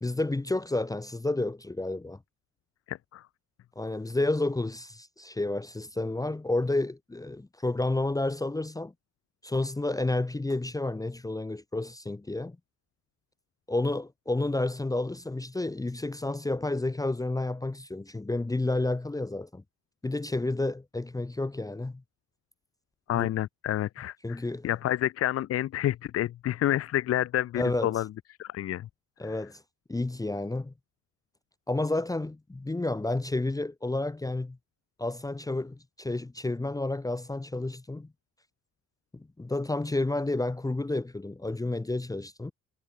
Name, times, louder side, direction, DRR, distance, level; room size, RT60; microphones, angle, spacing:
voice 1, 0.0-2.2 3.8-8.9 9.4-12.6 13.7-19.6 20.0-22.0 23.1-23.3 24.2-24.7 27.6-28.0 29.2-29.6 29.9-30.7 31.7-34.6 35.0-38.1 39.1-42.5, left 2 dB, 10° left, 0.8 m, -30 dB
voice 2, 2.9-3.2 23.1-28.1 28.4-28.9 29.2-29.4, left 13 dB, 50° left, 0.5 m, -29 dB
cardioid pair, 90°, 30 cm